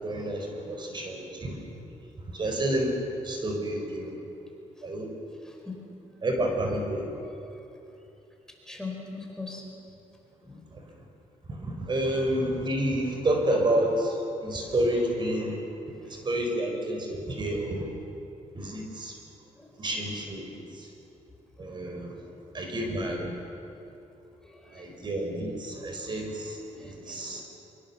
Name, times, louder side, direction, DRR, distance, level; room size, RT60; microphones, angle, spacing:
voice 1, 0.0-1.6 2.3-3.0 3.2-4.1 4.8-5.1 6.2-7.1 10.7-10.8 11.5-15.6 16.1-17.9 18.5-19.1 19.8-20.9 21.6-22.2 22.5-23.3 24.7-27.4, right 1 dB, 35° right, 2 dB, 4.5 m, -29 dB
voice 2, 5.5-5.8 8.7-9.6 10.4-10.6 16.0-16.2 19.6-19.7 22.2-22.3 24.4-25.0 26.7-27.4, left 4 dB, 5° left, 0 dB, 4.9 m, -42 dB
24.5 x 24.0 x 7.3 m, 2.8 s
cardioid pair, 105°, 13 cm